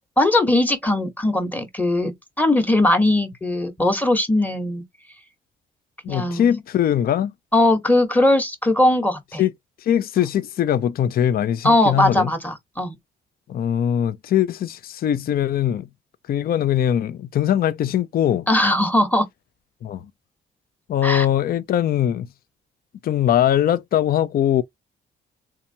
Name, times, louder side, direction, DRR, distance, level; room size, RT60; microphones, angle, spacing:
voice 1, 0.2-4.8 6.1-6.6 7.5-9.4 11.6-13.0 18.5-19.3 21.0-21.3, left 1 dB, 10° left, 1.1 m, -19 dB
voice 2, 6.0-7.3 9.4-9.5 9.8-12.3 13.5-15.9 16.3-18.5 19.8-20.0 20.9-22.3 23.0-24.6, left 10 dB, 50° left, 0.4 m, -21 dB
3.5 x 2.8 x 2.7 m
cardioid pair, 90°, 20 cm